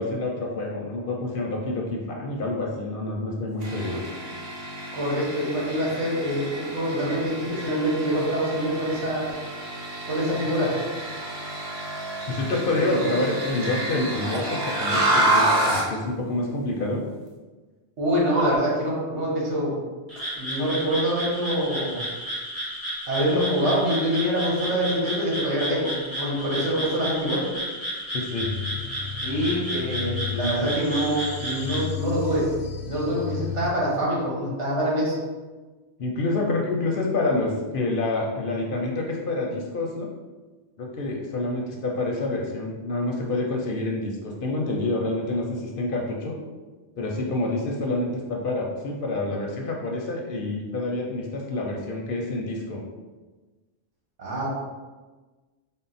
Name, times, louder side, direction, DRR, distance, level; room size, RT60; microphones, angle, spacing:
voice 1, 0.0-4.0 12.3-17.0 28.1-28.5 36.0-40.1 40.8-46.4 47.0-52.8, left 2 dB, 55° left, 0 dB, 0.7 m, -27 dB
sound 1, 3.6-15.9, right 1 dB, 50° right, 0.9 m, -29 dB
voice 2, 4.9-9.3 10.1-10.7 12.7-13.0 18.0-19.7 20.4-22.1 23.1-27.4 29.2-32.4 32.9-35.2 54.2-54.5, equal, 80° right, -5 dB, 1.5 m, -25 dB
Frog, 20.1-31.8, equal, 20° right, 1.1 m, -32 dB
sound 2, 28.4-33.7, left 7 dB, 85° left, 0.9 m, -34 dB
4.3 x 2.0 x 4.0 m, 1.3 s
omnidirectional pair, 1.2 m